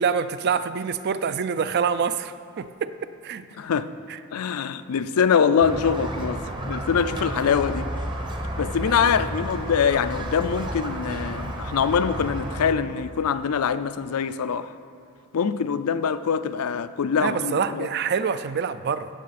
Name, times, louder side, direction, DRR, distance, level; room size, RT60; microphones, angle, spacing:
voice 1, 0.0-2.9 3.2-3.4 4.1-4.2 17.2-19.1, right 6 dB, 50° right, 0.4 m, -26 dB
voice 2, 3.6-3.9 4.3-7.9 8.6-14.7 15.3-17.9, left 6 dB, 80° left, 0.4 m, -24 dB
Squeak, 5.6-12.7, right 1 dB, 20° right, 0.9 m, -31 dB
16.0 x 6.5 x 4.2 m
head